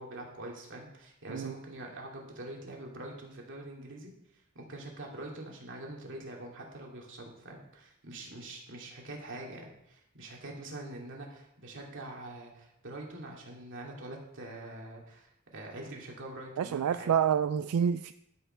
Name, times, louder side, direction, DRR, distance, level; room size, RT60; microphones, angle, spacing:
voice 1, 0.0-17.1, right 1 dB, 60° right, -1 dB, 2.6 m, -44 dB
voice 2, 16.6-18.1, right 8 dB, 90° right, 12 dB, 0.3 m, -28 dB
13.0 x 5.7 x 5.5 m, 0.80 s
head